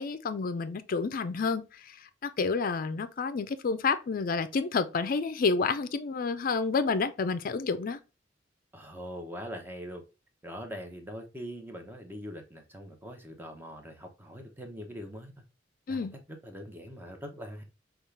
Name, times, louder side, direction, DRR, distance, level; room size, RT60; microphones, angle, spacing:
voice 1, 0.0-8.0 15.9-16.2, left 4 dB, 50° left, 0.4 m, -29 dB
voice 2, 8.7-10.0 10.4-15.4 15.9-17.6, equal, 10° right, 0.8 m, -42 dB
5.3 x 2.4 x 3.2 m
head